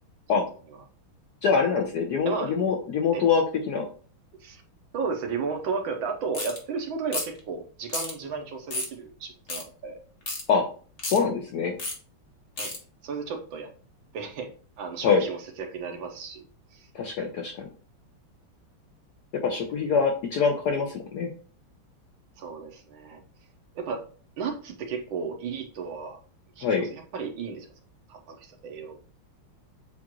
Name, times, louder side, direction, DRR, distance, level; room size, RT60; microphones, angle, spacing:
voice 1, 1.4-3.8 10.5-10.6 11.1-11.7 15.0-15.2 16.9-17.7 19.4-21.3 26.6-26.9, left 5 dB, 70° left, 2 dB, 0.9 m, -24 dB
voice 2, 2.2-2.6 3.1-3.2 4.4-4.6 4.9-10.0 12.6-12.7 13.0-13.7 14.1-14.5 14.8-16.4 16.7-16.9 19.5-19.6 22.4-23.2 23.7-24.0 24.4-26.2 26.6-27.7 28.1-29.0, right 5 dB, 75° right, 4 dB, 1.5 m, -34 dB
sound 1, 6.3-6.6 7.1-7.4 7.9-8.1 8.7-8.9 9.5-9.6 10.3-10.4 11.0-11.2 11.8-12.0 12.6-12.8, left 2 dB, 45° left, 0.8 m, -31 dB
7.2 x 2.5 x 2.9 m, 0.40 s
omnidirectional pair, 2.3 m